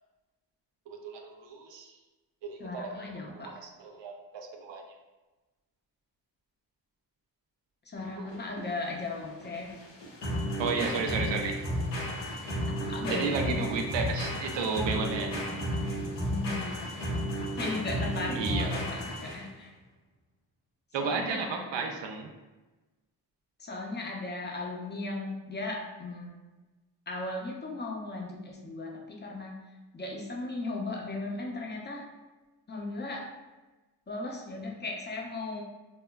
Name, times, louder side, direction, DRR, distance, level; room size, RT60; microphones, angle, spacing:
voice 1, 0.9-1.9 2.4-2.9 3.4-4.9 8.2-8.3 10.6-11.6 13.1-15.4 18.4-18.8 20.9-22.3, right 4 dB, 80° right, 3 dB, 0.5 m, -33 dB
voice 2, 2.6-3.6 7.9-9.8 12.7-13.9 16.0-19.7 21.0-21.6 23.6-26.4 27.1-29.6 29.9-32.1 32.7-33.3 34.1-35.6, left 2 dB, 25° left, 0 dB, 0.6 m, -37 dB
sound 1, 8.0-19.6, equal, 75° left, 0.7 m, -33 dB
2.9 x 2.1 x 2.3 m, 1.1 s
cardioid pair, 50°, 43 cm